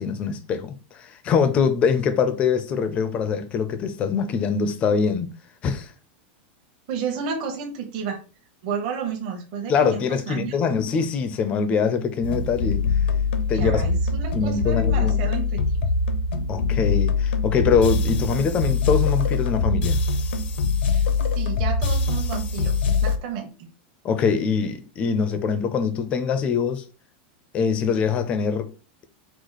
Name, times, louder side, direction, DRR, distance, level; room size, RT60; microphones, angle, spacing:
voice 1, 0.0-5.3 5.6-5.9 9.7-12.8 13.5-13.8 14.3-15.2 16.5-20.0 24.0-26.9 27.5-28.7, left 6 dB, 20° left, 0.5 m, -23 dB
voice 2, 6.9-8.2 8.6-10.5 13.5-15.6 20.9-21.0 21.3-23.5, right 6 dB, 45° right, 1.0 m, -31 dB
sound 1, 12.2-23.2, left 4 dB, 80° left, 0.7 m, -23 dB
4.8 x 2.0 x 4.0 m
supercardioid pair, 170°, 6 cm